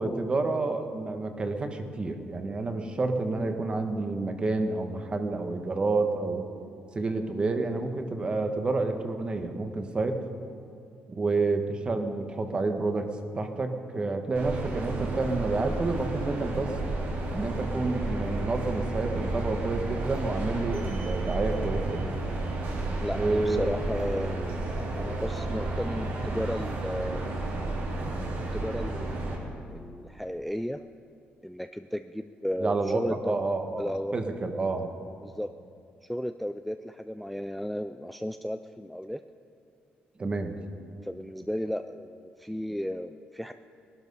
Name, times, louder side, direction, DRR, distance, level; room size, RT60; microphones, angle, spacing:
voice 1, 0.0-6.5 6.9-10.2 11.1-13.1 13.3-16.7 17.3-22.1 23.1-23.6 32.6-34.9 40.2-40.6, right 3 dB, 25° right, 6 dB, 1.3 m, -29 dB
sound 1, 14.4-29.4, right 2 dB, 70° right, 3.4 m, -32 dB
voice 2, 23.0-27.3 28.5-30.8 31.4-33.4 33.8-34.2 35.2-35.5 36.0-39.2 41.0-43.5, equal, ahead, 9 dB, 0.3 m, -34 dB
19.5 x 12.0 x 5.5 m, 2.4 s
cardioid pair, 135°, 4 cm